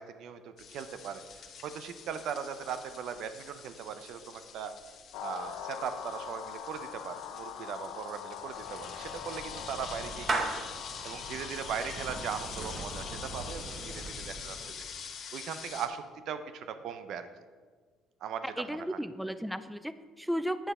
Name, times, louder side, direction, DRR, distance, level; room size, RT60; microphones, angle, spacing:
voice 1, 0.0-4.8 5.2-10.6 11.0-17.3 18.2-19.0, right 7 dB, 70° right, 10 dB, 0.7 m, -39 dB
sound 1, 0.6-15.9, left 6 dB, 55° left, 1.3 m, -46 dB
sound 2, 5.1-13.5, left 9 dB, 85° left, 0.7 m, -44 dB
Clapping / Meow, 8.4-14.8, right 3 dB, 40° right, 1.2 m, -39 dB
voice 2, 18.6-20.7, equal, ahead, 13 dB, 0.4 m, -34 dB
9.0 x 6.8 x 4.3 m, 1.5 s
supercardioid pair, 85°, 0 cm